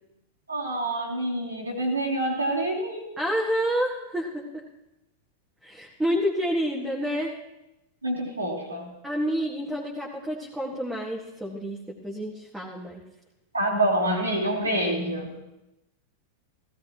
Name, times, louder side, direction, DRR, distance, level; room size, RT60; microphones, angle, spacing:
voice 1, 0.5-3.0 8.0-8.9 13.5-15.3, right 1 dB, 85° right, -4 dB, 3.0 m, -27 dB
voice 2, 3.2-4.5 5.6-7.4 9.0-13.0, equal, 5° right, -4 dB, 1.8 m, -29 dB
16.0 x 16.0 x 3.0 m, 0.95 s
figure-of-eight pair, 90°, 0 cm